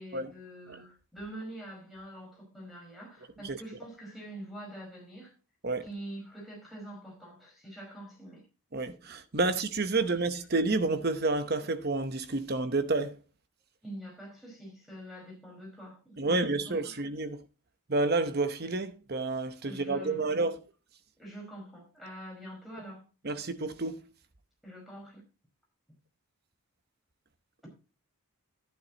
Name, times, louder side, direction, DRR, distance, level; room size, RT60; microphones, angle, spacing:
voice 1, 0.0-5.3 5.8-8.4 10.1-10.2 13.8-17.0 19.6-20.3 21.2-23.0 24.6-25.2, right 1 dB, ahead, 4.9 m, -45 dB
voice 2, 8.7-13.2 16.2-17.4 17.9-20.6 23.2-24.0, right 3 dB, 45° right, 0.9 m, -29 dB
11.5 x 10.0 x 2.9 m
head